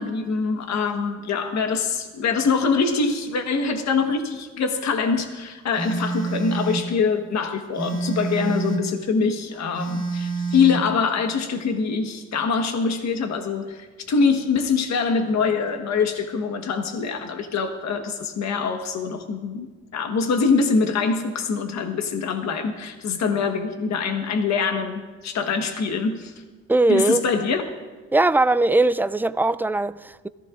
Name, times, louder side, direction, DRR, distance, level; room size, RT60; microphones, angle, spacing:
voice 1, 0.0-26.3 26.9-27.6, left 5 dB, 65° left, 1.3 m, -24 dB
Telephone, 5.7-6.9 7.7-8.9 9.7-10.9, right 4 dB, 40° left, 2.5 m, -27 dB
voice 2, 26.7-27.2 28.1-30.3, right 2 dB, 5° right, 0.3 m, -20 dB
21.5 x 15.0 x 2.5 m
cardioid pair, 90°, 30 cm